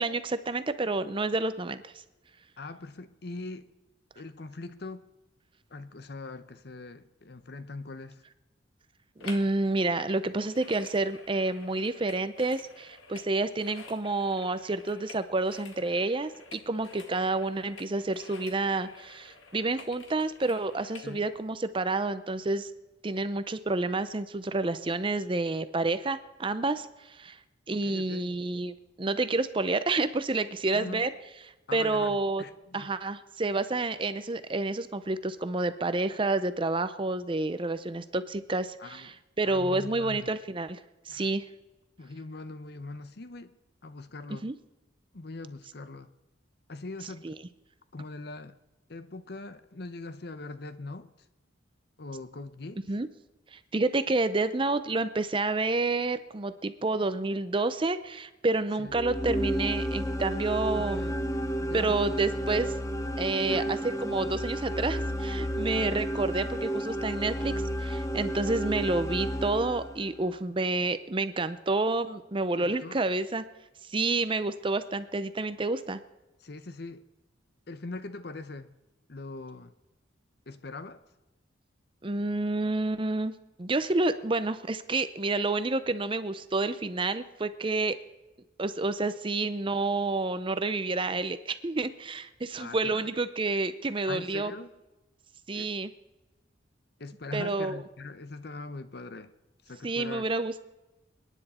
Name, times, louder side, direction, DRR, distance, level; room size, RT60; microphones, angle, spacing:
voice 1, 0.0-1.9 9.2-22.7 23.0-27.4 27.7-31.1 31.7-32.4 32.7-40.8 41.1-41.4 44.4-44.5 47.2-47.3 52.9-53.1 53.5-61.1 61.7-62.7 63.2-67.5 67.8-73.4 73.9-76.0 82.0-83.3 83.6-88.0 88.6-94.5 95.5-95.9 97.3-97.8 99.8-100.6, right 2 dB, 25° right, 12 dB, 0.6 m, -29 dB
voice 2, 2.6-3.7 4.2-5.1 5.7-8.2 21.0-21.2 27.7-28.4 30.7-31.1 31.7-32.9 38.8-39.2 39.4-40.3 41.1-41.3 42.0-43.5 43.8-44.5 45.1-46.1 46.7-47.3 47.9-48.6 48.9-51.1 52.0-52.8 58.8-58.9 60.7-61.2 61.6-62.0 63.4-63.8 65.7-66.0 72.6-73.0 76.4-77.0 77.7-78.7 79.1-79.7 80.5-81.0 92.6-93.1 94.1-94.7 95.5-95.7 97.0-99.3 99.6-100.2, left 3 dB, 55° left, 12 dB, 0.8 m, -41 dB
sound 1, 9.2-9.6 9.8-21.1 21.6-21.7, left 4 dB, 85° left, 1.7 m, -49 dB
sound 2, 58.9-70.2, equal, 15° left, 0.8 m, -32 dB
28.5 x 10.0 x 4.3 m, 1.0 s
head